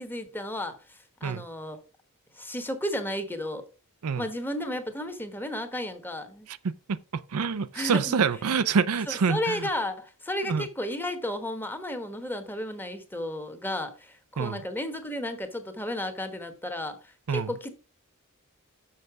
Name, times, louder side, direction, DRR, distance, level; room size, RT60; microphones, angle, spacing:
voice 1, 0.0-1.8 2.3-3.6 4.2-6.5 7.7-8.2 9.1-17.7, left 1 dB, 10° left, 1.1 m, -33 dB
voice 2, 6.6-7.0 7.3-9.7 10.5-10.7 14.4-14.6 17.3-17.5, right 5 dB, 70° right, 0.5 m, -26 dB
6.6 x 6.5 x 4.8 m
head